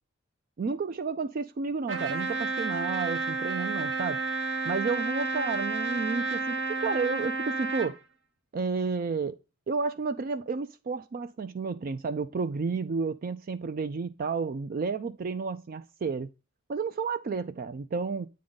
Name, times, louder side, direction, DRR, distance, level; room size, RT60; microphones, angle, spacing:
voice 1, 0.6-4.2 4.6-8.0 8.5-9.4 9.7-16.3 16.7-18.3, right 4 dB, 45° right, 0.4 m, -31 dB
Trumpet, 1.9-7.9, right 3 dB, 65° right, 1.3 m, -31 dB
8.6 x 3.7 x 3.7 m
head